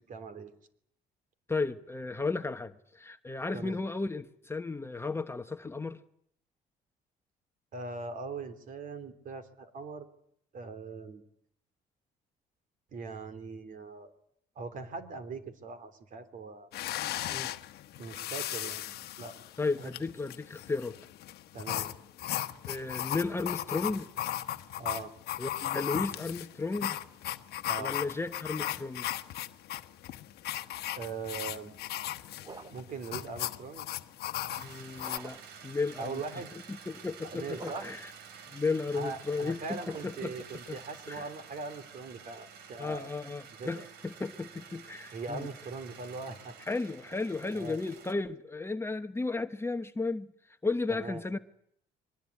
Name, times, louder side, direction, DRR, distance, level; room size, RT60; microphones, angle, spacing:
voice 1, 0.1-0.5 3.5-3.8 7.7-10.1 10.5-11.2 12.9-14.1 14.5-16.7 18.0-19.4 19.8-19.9 21.5-21.9 24.8-25.1 27.6-28.0 30.9-31.7 32.7-33.9 36.0-36.5 37.2-37.9 38.9-43.1 43.6-43.8 45.1-46.6 47.5-47.8 50.9-51.2, right 4 dB, 50° right, 9 dB, 3.2 m, -41 dB
voice 2, 1.5-6.0 17.3-17.5 19.6-21.0 22.7-24.1 25.4-27.0 27.8-29.1 34.6-36.2 36.7-38.1 38.5-40.3 40.7-40.8 41.1-41.3 42.8-45.5 46.6-51.4, left 3 dB, 15° left, 8 dB, 1.0 m, -34 dB
sound 1, 16.7-35.2, left 13 dB, 70° left, 1.2 m, -37 dB
sound 2, 32.4-33.0 35.0-35.6 37.5-38.2 39.6-40.4, right 4 dB, 25° right, 1.1 m, -48 dB
sound 3, 34.5-48.1, right 6 dB, 80° right, 3.2 m, -50 dB
23.5 x 20.5 x 9.7 m, 0.71 s
cardioid pair, 110°, 17 cm